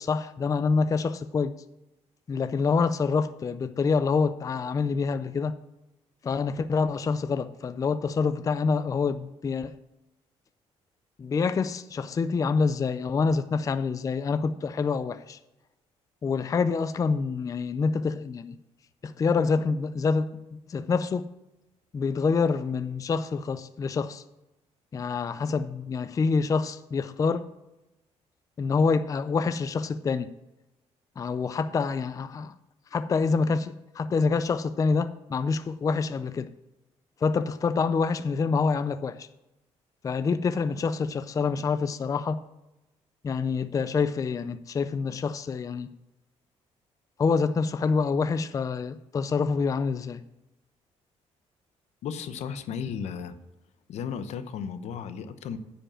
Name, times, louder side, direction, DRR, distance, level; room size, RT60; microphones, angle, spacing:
voice 1, 0.0-1.6 2.3-5.6 6.2-9.8 11.2-15.4 16.2-18.6 19.0-21.3 21.9-24.2 24.9-27.5 28.6-30.3 31.2-32.5 32.9-36.5 37.2-39.3 40.0-42.4 43.2-45.9 47.2-50.2, left 5 dB, 30° left, 0.4 m, -26 dB
voice 2, 52.0-53.3 53.9-55.6, left 7 dB, 75° left, 0.7 m, -34 dB
9.7 x 5.2 x 7.4 m
cardioid pair, 105°, 12 cm